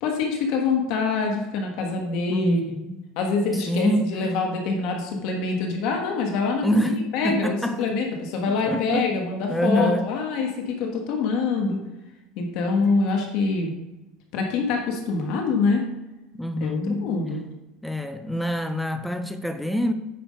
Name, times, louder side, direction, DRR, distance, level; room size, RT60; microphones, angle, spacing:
voice 1, 0.0-2.8 3.2-11.8 12.4-13.7 14.3-15.8 16.6-17.4, left 4 dB, 50° left, 1.4 m, -25 dB
voice 2, 2.3-3.0 3.7-4.3 6.6-7.9 8.5-9.1 9.5-10.1 16.3-17.2 17.8-19.9, equal, ahead, 0.4 m, -26 dB
9.2 x 6.0 x 5.2 m
cardioid pair, 180°, 0 cm